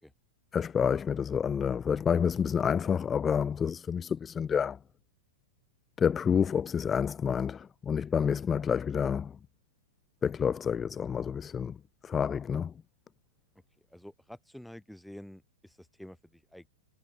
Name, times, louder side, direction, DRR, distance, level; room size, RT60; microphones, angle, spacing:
voice 1, 0.5-4.8 6.0-9.4 10.2-11.8 12.0-12.7, left 7 dB, 20° left, 0.8 m, -28 dB
voice 2, 13.8-16.7, left 1 dB, ahead, 6.8 m, -49 dB
hypercardioid pair, 110°, 0 cm